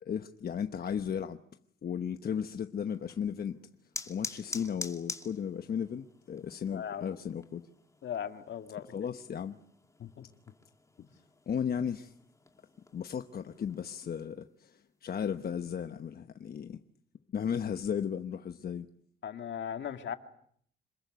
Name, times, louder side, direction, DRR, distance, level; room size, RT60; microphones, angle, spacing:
voice 1, 0.0-1.4 1.8-3.6 4.1-7.7 8.8-9.6 11.5-12.1 12.9-16.8 17.3-18.9, left 8 dB, 55° left, 1.0 m, -35 dB
sound 1, 2.9-14.1, left 2 dB, 15° left, 2.5 m, -47 dB
voice 2, 6.7-7.2 8.0-8.9 10.0-10.3 11.0-11.1 19.2-20.1, left 8 dB, 70° left, 2.2 m, -38 dB
27.0 x 21.5 x 9.3 m
cardioid pair, 115°, 19 cm